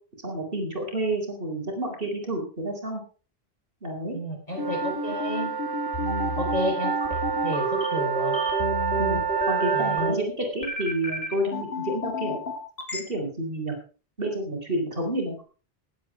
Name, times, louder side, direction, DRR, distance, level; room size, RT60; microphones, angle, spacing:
voice 1, 0.2-3.0 3.8-4.2 6.0-6.3 9.0-12.4 12.9-13.7 14.2-15.4, right 1 dB, 65° right, 3 dB, 4.2 m, -30 dB
voice 2, 4.1-5.6 6.4-8.3 9.7-10.2, equal, 40° left, 2 dB, 4.3 m, -31 dB
sound 1, 4.5-10.2, right 7 dB, 30° right, 0.5 m, -29 dB
sound 2, 4.6-13.0, right 1 dB, 75° left, 2.9 m, -30 dB
18.5 x 8.6 x 4.8 m, 0.37 s
omnidirectional pair, 1.0 m